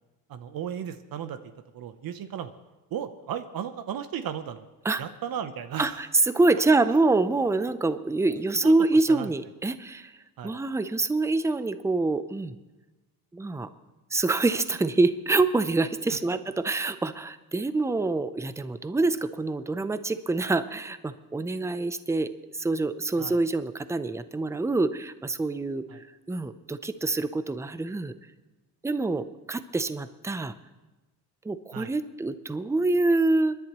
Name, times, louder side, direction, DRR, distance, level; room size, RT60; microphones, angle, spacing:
voice 1, 0.3-1.4 1.7-2.5 2.9-4.7 5.0-6.0 6.6-6.7 8.6-8.7 9.1-9.3 10.4-10.6 16.1-16.2 23.2-23.4 25.9-26.0 31.7-31.9, right 9 dB, 55° right, 11 dB, 0.9 m, -35 dB
voice 2, 5.8-10.1 10.4-12.6 13.3-13.7 14.1-28.1 28.8-30.5 31.4-33.6, right 3 dB, 5° right, 12 dB, 0.6 m, -26 dB
28.0 x 10.5 x 3.1 m, 1.1 s
supercardioid pair, 80°, 41 cm